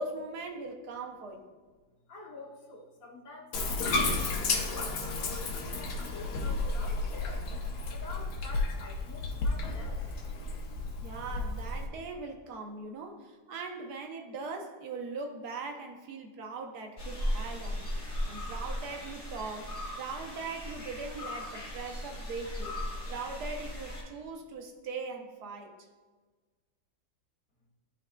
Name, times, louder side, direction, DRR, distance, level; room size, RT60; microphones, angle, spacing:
voice 1, 0.0-1.5 11.0-17.9 18.2-19.7 20.0-22.8 23.1-25.7, right 3 dB, 70° right, 3 dB, 1.4 m, -40 dB
voice 2, 2.1-4.3 4.7-7.5 7.9-10.3, left 2 dB, 55° left, -5 dB, 1.8 m, -47 dB
Bathtub (filling or washing), 3.5-11.9, left 3 dB, 75° left, 1.4 m, -32 dB
sound 1, 17.0-24.0, left 1 dB, 20° left, 1.9 m, -37 dB
12.5 x 4.7 x 2.2 m, 1.4 s
omnidirectional pair, 1.8 m